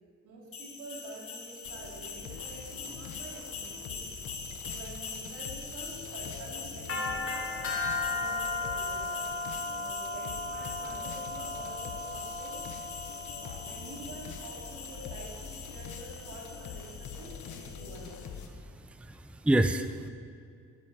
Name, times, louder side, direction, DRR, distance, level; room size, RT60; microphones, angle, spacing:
voice 1, 0.2-4.1 4.6-7.3 8.0-9.4 9.8-12.6 13.4-18.3, right 2 dB, 85° right, -3 dB, 3.5 m, -47 dB
sound 1, 0.5-18.2, left 3 dB, 45° left, 2.9 m, -38 dB
sound 2, 1.6-18.5, left 6 dB, 80° left, 1.2 m, -45 dB
voice 2, 18.7-20.1, right 1 dB, 5° right, 9 dB, 0.6 m, -28 dB
11.0 x 10.5 x 7.3 m, 2.3 s
cardioid pair, 90°, 30 cm